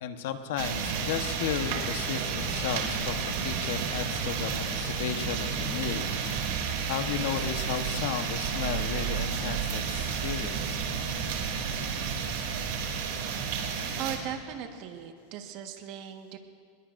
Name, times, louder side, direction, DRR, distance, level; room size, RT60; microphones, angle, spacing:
voice 1, 0.0-10.8, left 8 dB, 75° left, 7 dB, 1.2 m, -34 dB
sound 1, 0.6-14.2, right 6 dB, 65° right, 3.0 m, -31 dB
voice 2, 14.0-16.4, right 9 dB, 50° right, 5 dB, 1.5 m, -38 dB
24.5 x 21.0 x 2.6 m, 2.2 s
supercardioid pair, 155°, 0 cm